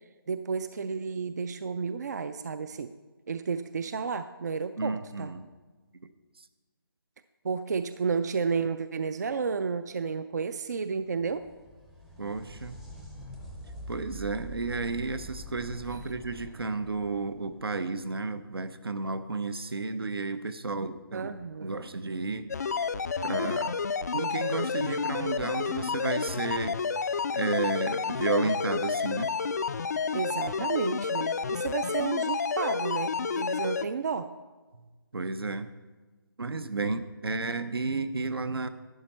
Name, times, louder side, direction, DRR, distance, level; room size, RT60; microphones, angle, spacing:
voice 1, 0.3-2.9 3.3-5.3 7.4-11.5 21.1-21.9 30.1-34.3, right 5 dB, 45° right, 12 dB, 0.4 m, -32 dB
voice 2, 4.8-5.5 12.2-12.8 13.9-22.5 23.2-23.8 24.1-26.8 27.3-29.4 34.7-34.8 35.1-35.7 36.4-38.7, right 3 dB, 80° right, 12 dB, 0.8 m, -32 dB
sound 1, 11.0-18.5 21.9-22.0 23.1-23.2, equal, 5° right, 0.6 m, -45 dB
sound 2, 22.5-33.8, left 5 dB, 45° left, 0.3 m, -30 dB
12.0 x 9.1 x 4.3 m, 1.3 s
figure-of-eight pair, 160°, 12 cm